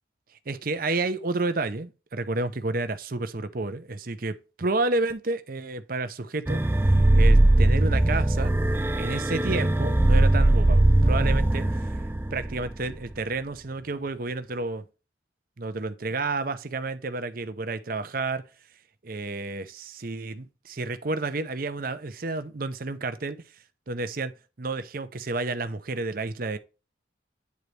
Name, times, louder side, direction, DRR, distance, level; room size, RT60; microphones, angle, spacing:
voice 1, 0.5-6.6 7.1-8.5 9.0-11.7 12.3-14.8 15.6-18.5 19.0-23.4 23.9-24.3 24.6-26.6, right 3 dB, 45° right, 0.7 m, -30 dB
sound 1, 6.5-13.2, right 1 dB, 10° right, 0.3 m, -20 dB
9.5 x 4.0 x 3.2 m
head